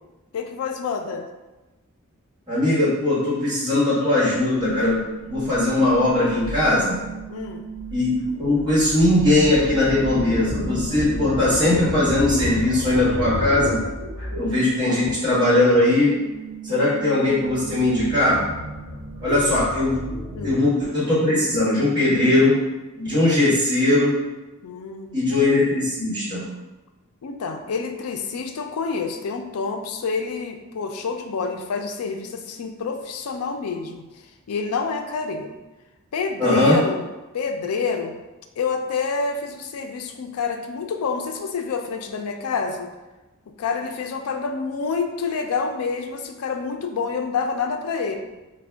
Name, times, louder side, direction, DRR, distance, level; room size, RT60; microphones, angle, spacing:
voice 1, 0.3-1.3 7.3-7.6 19.2-19.4 20.3-20.6 24.6-25.4 27.2-34.1 34.5-35.6 36.1-37.0 37.3-38.2 38.6-42.9 43.5-48.2, left 5 dB, 80° left, 5 dB, 0.4 m, -28 dB
voice 2, 2.5-5.0 5.2-7.0 7.9-13.8 14.3-16.1 16.6-18.4 19.2-22.5 23.0-24.1 25.1-26.4 36.4-36.8, left 2 dB, 20° right, -9 dB, 1.2 m, -20 dB
sound 1, 4.3-15.1 15.4-20.6, right 1 dB, 25° left, 1.3 m, -32 dB
3.4 x 2.2 x 3.3 m, 1.1 s
head